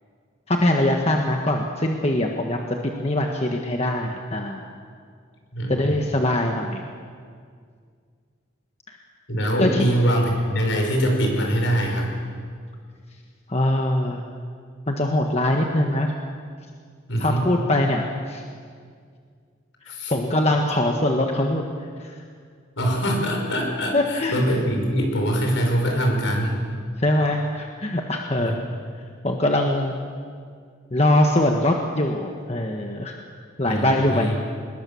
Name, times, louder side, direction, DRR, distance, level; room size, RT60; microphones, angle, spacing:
voice 1, 0.5-4.6 5.7-6.8 9.6-9.9 13.5-14.2 14.9-16.1 17.2-18.4 20.1-21.6 22.0-22.1 23.9-24.4 27.0-28.6 29.2-29.9 30.9-33.1 33.6-34.4, left 1 dB, 30° left, 2 dB, 1.4 m, -22 dB
voice 2, 5.5-5.9 9.3-12.1 17.1-17.5 19.9-20.1 22.8-26.6 28.4-28.6 33.6-34.4, equal, 70° left, 1 dB, 5.7 m, -23 dB
24.5 x 21.0 x 7.1 m, 2.1 s
head